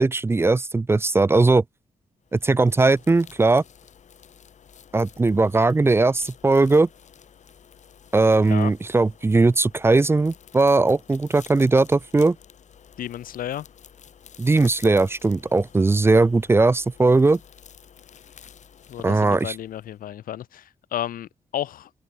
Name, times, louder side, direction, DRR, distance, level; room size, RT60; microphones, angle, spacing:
voice 1, 0.0-1.6 2.3-3.6 4.9-6.9 8.1-12.4 14.4-17.4 19.0-19.5, right 3 dB, 15° right, 0.5 m, -19 dB
sound 1, 2.2-20.1, left 8 dB, 55° left, 2.3 m, -50 dB
voice 2, 8.3-8.7 13.0-13.7 18.9-21.9, left 11 dB, 80° left, 0.5 m, -32 dB
open air
wide cardioid pair, 165°, 14 cm